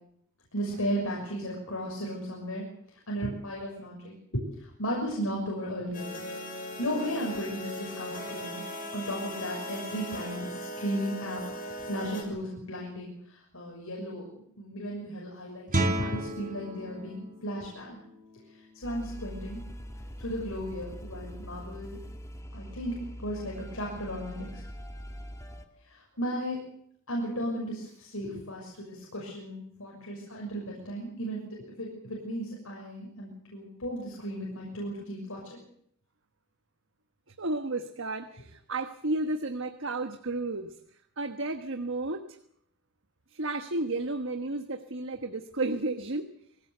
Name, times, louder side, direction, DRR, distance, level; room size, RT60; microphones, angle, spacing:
voice 1, 0.5-2.7 3.1-6.1 6.8-8.6 8.9-11.4 11.8-18.0 18.7-19.6 20.2-22.0 22.5-24.6 25.8-26.6 27.1-35.6, equal, 75° left, -2 dB, 6.2 m, -35 dB
sound 1, 5.9-12.2, left 1 dB, 45° left, 6.0 m, -38 dB
Guitar, 15.7-21.2, right 1 dB, 40° right, 2.8 m, -35 dB
sound 2, 18.8-25.6, equal, 15° left, 2.0 m, -43 dB
voice 2, 37.4-40.7 41.2-42.2 43.3-46.3, right 2 dB, 60° right, 7 dB, 1.3 m, -32 dB
24.0 x 16.5 x 8.0 m, 0.70 s
head